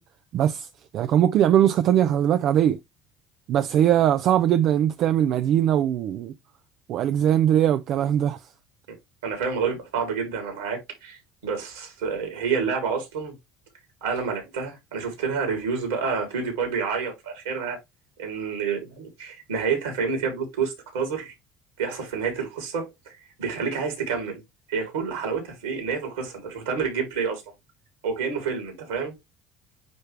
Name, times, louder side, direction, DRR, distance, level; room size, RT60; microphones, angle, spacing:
voice 1, 0.3-0.7 0.9-2.8 3.5-6.3 6.9-8.5, right 10 dB, 60° right, 0.5 m, -21 dB
voice 2, 9.2-13.3 14.0-17.8 18.2-21.3 21.8-24.4 24.7-27.4 28.0-29.1, right 5 dB, 80° right, 4.0 m, -28 dB
9.5 x 3.3 x 3.3 m
hypercardioid pair, 65°, 0 cm